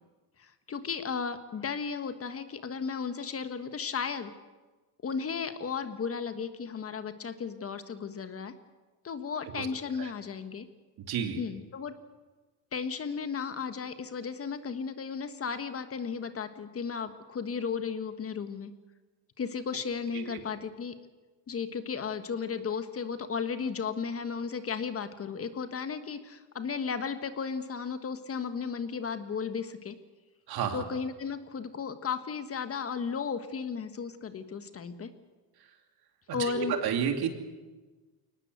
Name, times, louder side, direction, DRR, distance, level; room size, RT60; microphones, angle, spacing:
voice 1, 0.4-4.3 5.0-8.5 9.0-10.7 11.4-11.9 12.7-18.7 19.4-20.9 21.5-30.0 30.7-35.1 36.3-36.7, left 6 dB, 30° left, 9 dB, 1.4 m, -34 dB
voice 2, 11.0-11.4 20.1-20.4 30.5-30.8 36.4-37.3, right 8 dB, 50° right, 5 dB, 3.0 m, -31 dB
22.5 x 19.0 x 8.0 m, 1.3 s
supercardioid pair, 105°, 46 cm